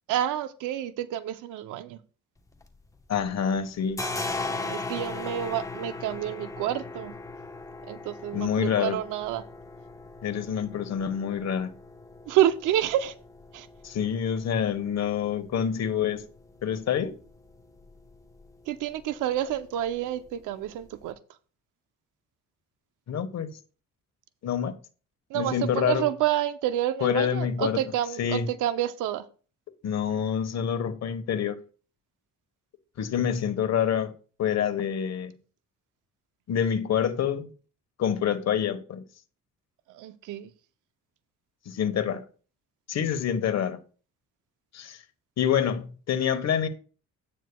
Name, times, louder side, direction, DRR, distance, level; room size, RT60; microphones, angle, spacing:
voice 1, 0.1-2.0 4.4-7.1 7.9-9.4 12.3-13.1 13.5-13.7 18.7-21.2 25.3-29.3 39.9-40.5, right 12 dB, 90° right, 0.7 m, -29 dB
sound 1, 2.4-3.3 3.6-21.1, left 3 dB, 10° left, 1.0 m, -40 dB
voice 2, 3.1-4.0 8.3-9.0 10.2-11.7 13.8-16.2 16.6-17.2 23.1-23.5 24.4-24.7 25.3-26.0 27.0-27.8 28.2-28.4 29.8-31.6 33.0-34.1 34.4-35.3 36.5-37.5 38.0-39.0 41.6-42.2 42.9-43.8 44.7-45.0 45.4-46.7, left 8 dB, 60° left, 1.3 m, -27 dB
9.7 x 9.2 x 2.3 m
cardioid pair, 90°, 30 cm